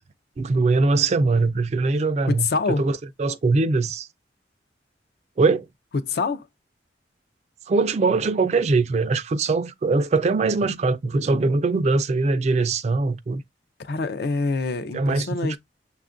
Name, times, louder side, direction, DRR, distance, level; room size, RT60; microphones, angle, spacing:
voice 1, 0.4-4.1 5.4-5.7 7.7-13.4 14.9-15.6, right 3 dB, 40° right, 0.3 m, -22 dB
voice 2, 2.3-2.9 5.9-6.5 13.8-15.6, left 3 dB, 60° left, 0.4 m, -25 dB
6.7 x 2.4 x 2.4 m
head